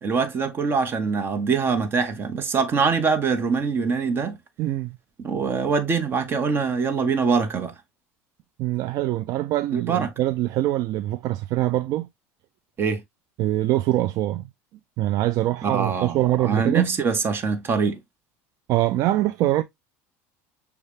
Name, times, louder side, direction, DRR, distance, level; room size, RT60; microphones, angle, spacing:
voice 1, 0.0-4.3 5.2-7.7 9.7-10.1 12.8-13.0 15.6-16.2 16.4-18.0, right 5 dB, 30° right, 1.0 m, -23 dB
voice 2, 4.6-5.0 8.6-12.1 13.4-14.5 15.0-16.9 18.7-19.6, right 15 dB, 55° right, 0.4 m, -23 dB
6.4 x 2.4 x 3.2 m
supercardioid pair, 105°, 7 cm